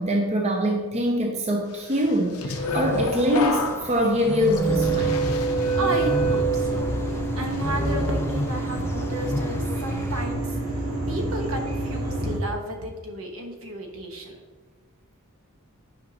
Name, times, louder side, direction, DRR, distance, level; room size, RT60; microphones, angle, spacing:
voice 1, 0.0-5.2, equal, 30° right, 1 dB, 0.6 m, -24 dB
sound 1, 2.0-7.1 7.5-7.9, right 3 dB, 85° left, 0.8 m, -27 dB
sound 2, 2.6-10.2, left 1 dB, 10° left, 0.3 m, -32 dB
sound 3, 4.7-12.4, right 1 dB, 90° right, 2.0 m, -28 dB
voice 2, 5.7-10.6 11.1-14.4, right 1 dB, 65° right, 2 dB, 1.2 m, -33 dB
9.4 x 5.4 x 2.9 m, 1.4 s
head